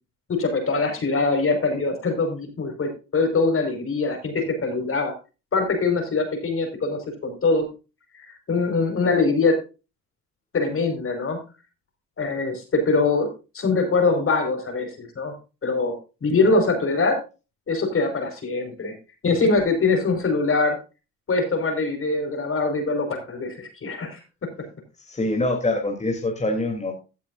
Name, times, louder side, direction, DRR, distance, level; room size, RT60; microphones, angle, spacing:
voice 1, 0.3-5.1 5.5-7.7 8.1-9.6 10.5-11.4 12.2-13.3 13.5-15.3 15.6-15.9 16.2-17.2 17.7-18.9 19.2-20.8 21.3-24.2, left 3 dB, 45° left, 5 dB, 5.0 m, -23 dB
voice 2, 25.0-26.9, left 2 dB, 20° left, 1 dB, 3.1 m, -24 dB
16.5 x 8.5 x 2.6 m, 0.30 s
cardioid pair, 90°, 30 cm